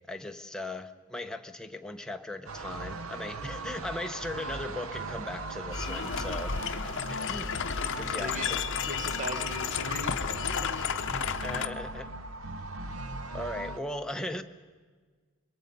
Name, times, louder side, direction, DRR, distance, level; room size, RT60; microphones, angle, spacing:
voice 1, 0.1-6.6 7.1-7.5 7.9-8.6 11.4-12.1 13.3-14.4, left 1 dB, 5° left, 5 dB, 0.9 m, -38 dB
sound 1, 2.5-13.8, right 2 dB, 75° right, 0.9 m, -39 dB
sound 2, 5.7-11.7, left 7 dB, 60° left, 0.8 m, -32 dB
voice 2, 8.8-11.1 13.2-13.3, right 2 dB, 35° right, 9 dB, 0.9 m, -40 dB
26.0 x 21.5 x 5.4 m, 1.5 s
head